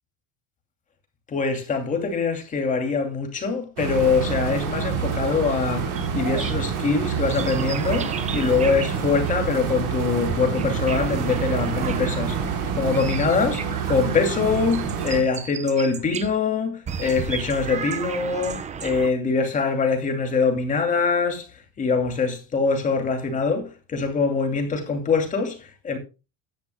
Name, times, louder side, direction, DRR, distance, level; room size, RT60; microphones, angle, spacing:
voice 1, 1.3-26.0, left 4 dB, 20° left, 2.6 m, -24 dB
sound 1, 3.8-15.2, right 6 dB, 65° right, 4.2 m, -27 dB
sound 2, 6.0-16.4 16.9-19.1, right 7 dB, 20° right, 0.8 m, -34 dB
16.0 x 10.5 x 2.2 m
cardioid pair, 170°, 34 cm